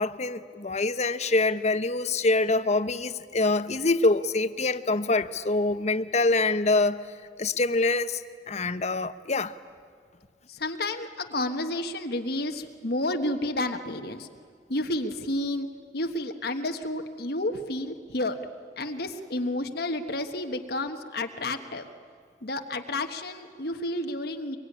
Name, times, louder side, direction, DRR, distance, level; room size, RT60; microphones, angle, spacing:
voice 1, 0.0-7.0 7.4-9.5, left 2 dB, 40° left, 0.9 m, -25 dB
voice 2, 10.5-14.3 14.7-15.7 15.9-18.4 18.8-21.9 22.4-24.6, left 1 dB, 60° left, 1.4 m, -31 dB
25.0 x 23.0 x 10.0 m
head